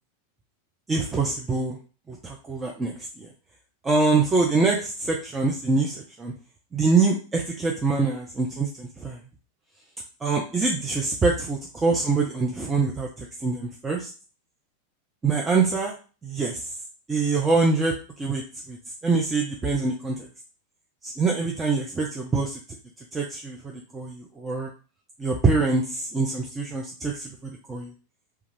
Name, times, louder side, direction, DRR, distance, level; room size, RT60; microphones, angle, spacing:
voice 1, 0.9-1.8 2.1-3.3 3.8-6.3 6.7-9.2 10.2-14.1 15.2-16.0 16.2-16.7 17.1-18.4 18.7-18.8 19.0-20.2 21.0-22.6 23.1-24.7 25.2-27.9, right 4 dB, 15° right, -1 dB, 0.4 m, -25 dB
2.3 x 2.2 x 3.2 m, 0.35 s
figure-of-eight pair, 90°, 0 cm